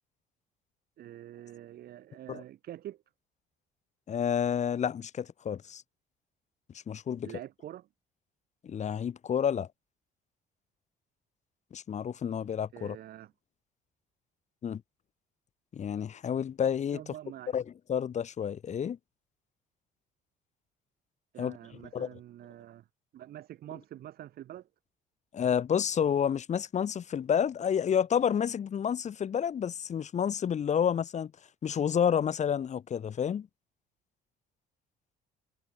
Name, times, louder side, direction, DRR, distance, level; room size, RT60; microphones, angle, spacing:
voice 1, 1.0-3.0 7.2-7.9 12.7-13.3 16.9-17.6 21.3-22.9 23.1-24.7, right 12 dB, 65° right, 4.8 m, -46 dB
voice 2, 4.1-5.8 6.9-7.3 8.6-9.7 11.7-13.0 14.6-14.8 15.7-17.0 17.5-17.6 17.9-19.0 21.4-21.6 21.9-22.1 25.3-31.3 31.6-33.5, left 8 dB, 45° left, 2.5 m, -29 dB
cardioid pair, 110°, 17 cm